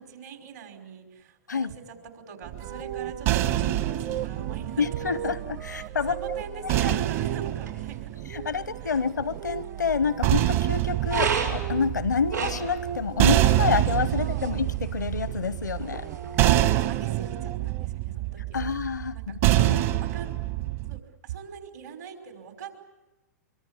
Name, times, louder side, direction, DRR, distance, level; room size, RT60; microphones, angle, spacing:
voice 1, 0.0-8.1 8.8-9.0 14.1-14.6 16.5-18.7 19.1-19.4 20.0-20.4 20.9-22.7, right 6 dB, 70° right, 4 dB, 5.3 m, -42 dB
sound 1, 2.5-5.8 6.7-9.0 9.9-21.0, right 15 dB, 55° right, 1.5 m, -26 dB
sound 2, 2.6-14.5 15.6-17.9, right 9 dB, 35° right, 0.8 m, -40 dB
sound 3, 3.4-16.5, right 6 dB, 90° right, 6.5 m, -37 dB
voice 2, 4.8-6.2 6.6-7.0 8.3-16.1 18.5-19.8, left 5 dB, 90° left, 17 dB, 0.8 m, -28 dB
24.5 x 24.5 x 8.4 m, 1.1 s
hypercardioid pair, 110°, 9 cm